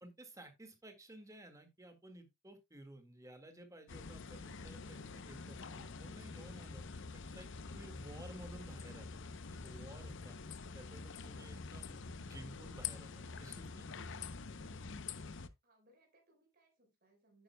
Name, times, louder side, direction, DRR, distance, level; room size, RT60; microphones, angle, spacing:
voice 1, 0.0-6.8 7.3-9.2 9.5-10.4 10.7-14.2, right 1 dB, 15° right, 1.8 m, -55 dB
sound 1, 3.9-15.5, left 4 dB, 60° left, 0.7 m, -46 dB
voice 2, 15.2-17.4, right 1 dB, 45° right, 4.4 m, -72 dB
10.0 x 9.0 x 2.2 m
head